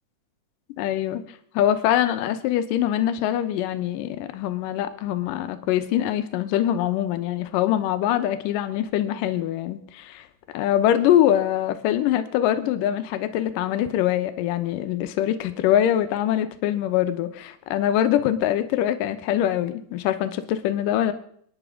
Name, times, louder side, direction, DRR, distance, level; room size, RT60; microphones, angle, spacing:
voice 1, 0.8-1.2 1.5-10.3 10.5-21.1, left 11 dB, 75° left, 9 dB, 2.2 m, -23 dB
24.0 x 10.0 x 3.7 m, 0.63 s
omnidirectional pair, 4.5 m